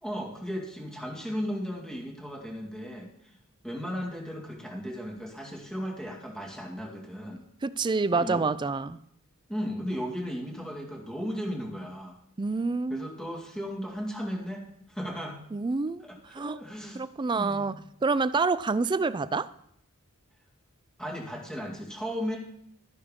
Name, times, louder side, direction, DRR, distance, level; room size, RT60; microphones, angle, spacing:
voice 1, 0.0-3.3 3.6-7.5 8.1-8.5 9.5-12.2 12.9-15.4 16.0-17.0 17.4-17.7 21.0-22.4, equal, 5° left, 2.1 m, -36 dB
voice 2, 7.6-9.0 12.4-13.1 15.5-16.0 16.3-16.6 17.0-17.7 18.0-19.5, right 4 dB, 20° right, 0.4 m, -27 dB
13.0 x 9.4 x 3.7 m
head